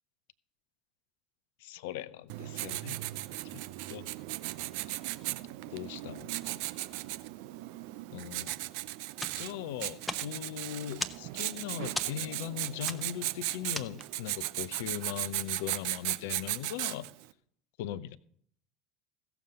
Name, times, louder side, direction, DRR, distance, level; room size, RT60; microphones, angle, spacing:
voice 1, 1.6-3.0 3.5-3.6 3.9-4.1 5.7-6.6 8.1-8.6 9.4-17.1 17.8-18.2, left 11 dB, 60° left, 0.5 m, -39 dB
Writing, 2.3-17.2, right 18 dB, 55° right, 0.5 m, -37 dB
sound 1, 9.1-14.4, left 1 dB, 10° left, 1.0 m, -41 dB
16.5 x 6.9 x 5.2 m
figure-of-eight pair, 70°, 0 cm